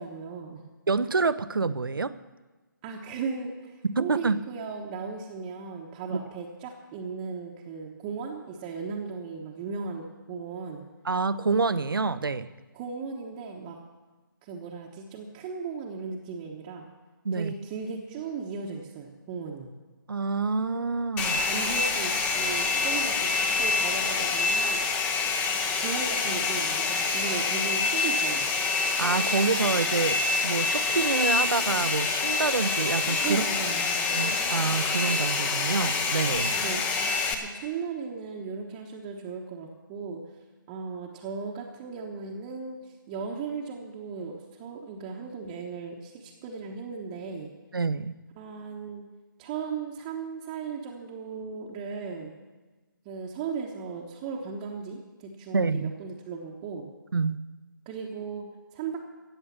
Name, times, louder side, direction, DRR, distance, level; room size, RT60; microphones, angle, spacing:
voice 1, 0.0-0.7 2.8-10.8 12.7-13.8 14.4-16.9 17.3-19.7 21.3-24.9 25.8-28.5 33.2-33.9 36.5-36.9 37.3-40.2 40.7-47.5 48.4-49.1 49.4-52.3 53.0-56.9 57.8-59.0, right 5 dB, 20° right, -2 dB, 1.1 m, -36 dB
voice 2, 0.9-2.1 3.8-4.4 6.1-6.2 11.0-12.5 17.2-17.5 20.1-21.4 29.0-33.4 34.1-36.5 47.7-48.1 55.5-55.9 57.1-57.4, right 4 dB, 80° right, 15 dB, 0.8 m, -27 dB
Domestic sounds home sounds, 21.2-37.3, left 4 dB, 10° left, 0.8 m, -26 dB
14.5 x 8.5 x 7.3 m, 1.2 s
figure-of-eight pair, 155°, 11 cm